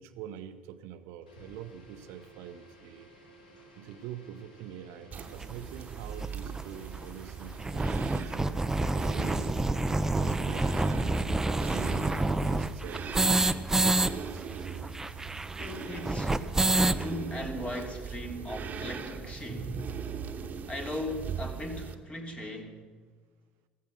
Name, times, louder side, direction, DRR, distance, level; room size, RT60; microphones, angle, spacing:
voice 1, 0.0-3.1 3.8-8.4 8.8-9.7 10.2-12.2 12.4-13.4 13.7-14.4, right 9 dB, 60° right, 11 dB, 0.8 m, -45 dB
sound 1, 1.3-8.3, right 1 dB, 80° left, 2.6 m, -55 dB
sound 2, 5.1-21.9, right 6 dB, 35° right, 1.3 m, -40 dB
sound 3, 5.4-5.5 6.2-6.3 6.6-6.7 6.9-7.0 7.4-14.1 14.4-14.5 14.7-17.0, right 2 dB, 10° right, 0.7 m, -27 dB
voice 2, 15.6-16.4 16.9-19.8 20.7-22.8, left 1 dB, 25° left, 3 dB, 3.1 m, -38 dB
15.5 x 15.0 x 6.3 m, 1.5 s
figure-of-eight pair, 60°, 4 cm